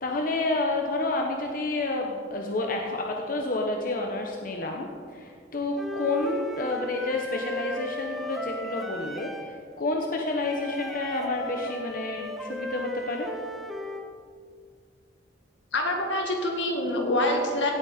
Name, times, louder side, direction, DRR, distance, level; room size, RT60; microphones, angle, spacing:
voice 1, 0.0-13.3, left 2 dB, 50° left, 1 dB, 1.0 m, -29 dB
Wind instrument woodwind instrument, 5.8-9.6 10.4-14.1, equal, ahead, 0.7 m, -36 dB
voice 2, 15.7-17.7, left 1 dB, 85° left, 1 dB, 2.1 m, -26 dB
16.5 x 8.5 x 4.3 m, 2.2 s
head